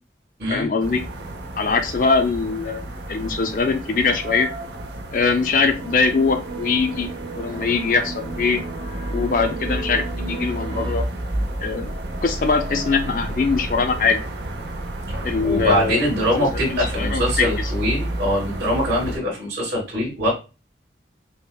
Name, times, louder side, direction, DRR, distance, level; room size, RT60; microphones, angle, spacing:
voice 1, 0.5-1.0 1.6-2.8 3.1-4.5 5.1-7.1 7.3-8.6 9.1-11.0 11.6-11.9 12.2-14.3 15.2-16.3 16.7-17.5, left 4 dB, 50° left, 6 dB, 0.4 m, -22 dB
sound 1, 0.8-19.2, right 1 dB, 70° right, 0.6 m, -31 dB
sound 2, 5.8-10.9, right 3 dB, 50° right, 1.8 m, -34 dB
voice 2, 15.4-20.3, equal, 85° right, -9 dB, 2.0 m, -23 dB
5.3 x 2.1 x 2.3 m, 0.30 s
head